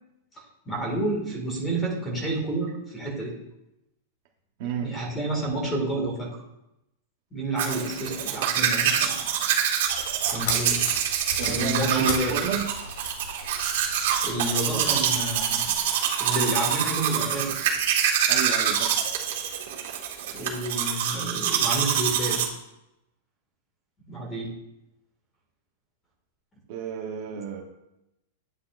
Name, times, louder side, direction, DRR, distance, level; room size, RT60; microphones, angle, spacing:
voice 1, 0.3-3.3 4.8-6.4 7.3-9.2 10.3-10.8 11.5-12.3 14.2-15.7 16.2-17.5 20.2-22.4 24.1-24.5, right 1 dB, 10° left, 0 dB, 1.9 m, -29 dB
voice 2, 4.6-4.9 11.4-12.7 18.3-19.0 26.7-27.6, right 7 dB, 40° right, 1 dB, 0.9 m, -31 dB
Domestic sounds home sounds, 7.6-22.4, right 8 dB, 55° right, 1.8 m, -25 dB
sound 1, 9.9-15.8, left 3 dB, 70° left, 2.0 m, -38 dB
9.4 x 8.6 x 2.5 m, 0.89 s
supercardioid pair, 175°, 0 cm